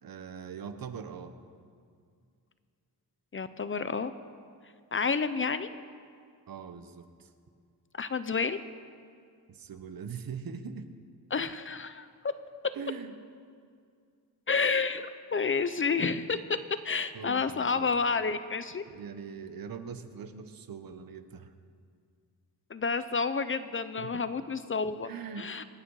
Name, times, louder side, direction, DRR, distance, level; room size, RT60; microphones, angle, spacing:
voice 1, 0.0-1.4 6.5-7.3 9.5-10.9 12.7-13.1 17.1-17.9 18.9-21.5 24.0-24.2 25.0-25.5, right 6 dB, 65° right, 9 dB, 1.1 m, -42 dB
voice 2, 3.3-4.1 4.9-5.7 8.0-8.6 11.3-12.1 14.5-16.4 16.8-18.8 22.7-25.1 25.4-25.6, left 5 dB, 35° left, 12 dB, 0.6 m, -30 dB
27.0 x 9.0 x 4.8 m, 2.2 s
wide cardioid pair, 110°, 38 cm